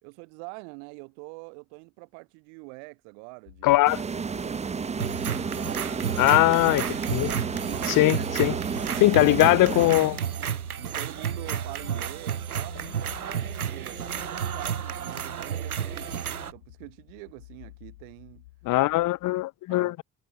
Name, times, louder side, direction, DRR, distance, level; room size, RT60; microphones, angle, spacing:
voice 1, 0.0-3.8 4.3-5.4 7.7-8.6 8.9-10.2 10.7-18.4 19.7-20.0, right 40 dB or more, 65° right, 2.6 m, -44 dB
sound 1, 3.5-19.4, left 17 dB, 75° left, 4.6 m, -50 dB
voice 2, 3.6-4.0 6.2-6.8 7.1-7.3 8.0-8.5 9.0-10.2 18.7-20.0, left 18 dB, 50° left, 0.8 m, -20 dB
sound 2, 3.9-10.5, right 5 dB, 15° right, 0.6 m, -32 dB
sound 3, 5.0-16.5, right 8 dB, 90° right, 0.6 m, -32 dB
figure-of-eight pair, 50°, 43 cm